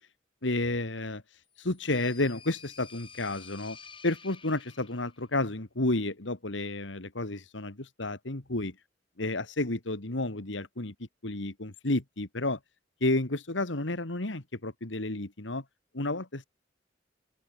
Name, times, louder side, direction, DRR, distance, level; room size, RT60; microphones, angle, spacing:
voice 1, 0.4-1.2 1.6-3.8 4.0-8.8 9.2-12.6 13.0-15.6 15.9-16.5, left 2 dB, 80° left, 2.3 m, -31 dB
sound 1, 1.5-5.3, left 6 dB, 30° left, 4.3 m, -51 dB
open air
head